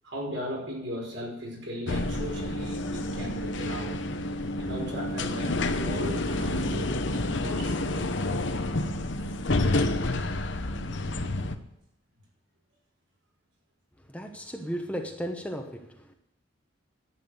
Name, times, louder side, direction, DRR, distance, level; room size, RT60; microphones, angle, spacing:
voice 1, 0.0-4.1 4.6-8.1, equal, 70° right, 5.6 m, -37 dB
sound 1, 1.9-11.6, left 2 dB, 60° left, 0.9 m, -29 dB
voice 2, 14.0-16.1, equal, 5° left, 0.9 m, -35 dB
11.0 x 8.9 x 8.1 m
head